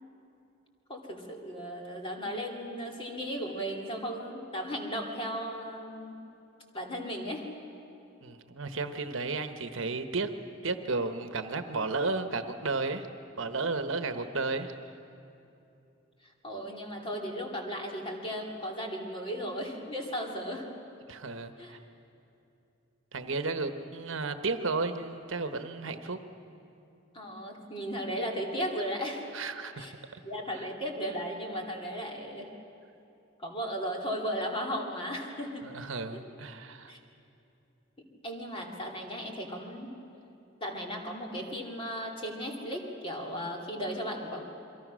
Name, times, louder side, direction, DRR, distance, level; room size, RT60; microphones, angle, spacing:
voice 1, 0.9-6.2 6.7-7.4 16.4-20.7 21.6-21.8 27.1-29.3 29.8-29.9 30.2-32.5 33.4-35.7 36.1-36.2 36.9-37.0 38.2-39.9 40.6-44.5, equal, 25° left, 0 dB, 2.8 m, -36 dB
voice 2, 8.2-10.3 10.6-13.1 13.4-14.7 21.1-21.8 23.1-26.2 29.3-29.9 30.1-30.2 30.6-30.7 35.6-36.9, right 3 dB, 65° right, 8 dB, 1.1 m, -33 dB
29.0 x 23.0 x 6.3 m, 2.8 s
head